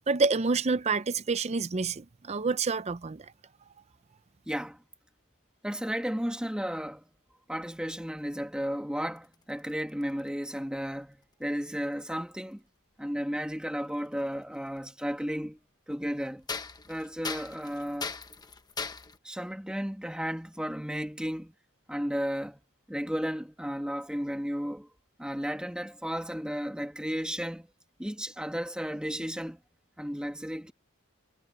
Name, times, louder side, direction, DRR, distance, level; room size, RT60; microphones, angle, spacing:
voice 1, 0.1-3.3, right 4 dB, 30° right, 0.5 m, -28 dB
voice 2, 4.5-4.8 5.6-7.0 7.5-12.6 13.0-15.6 15.9-16.4 16.9-18.1 19.2-21.5 21.9-22.6 22.9-24.9 25.2-27.7 28.0-29.6 30.0-30.7, equal, 5° right, 1.5 m, -33 dB
sound 1, 9.2-10.6 11.8-11.9 14.0-14.1 14.9-15.0 16.4-19.2, left 4 dB, 20° left, 1.0 m, -38 dB
head